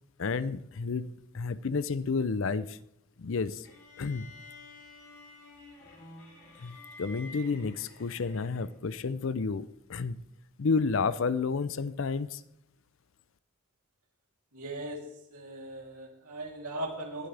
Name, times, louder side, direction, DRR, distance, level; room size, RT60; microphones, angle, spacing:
voice 1, 0.2-2.8 3.2-3.7 4.0-4.3 6.6-10.2 10.6-12.4, left 4 dB, 60° left, 16 dB, 0.5 m, -31 dB
sound 1, 3.6-8.9, left 2 dB, 90° left, 4.9 m, -51 dB
voice 2, 14.5-17.3, right 1 dB, 85° right, 0 dB, 3.2 m, -39 dB
20.0 x 11.5 x 3.4 m, 0.80 s
head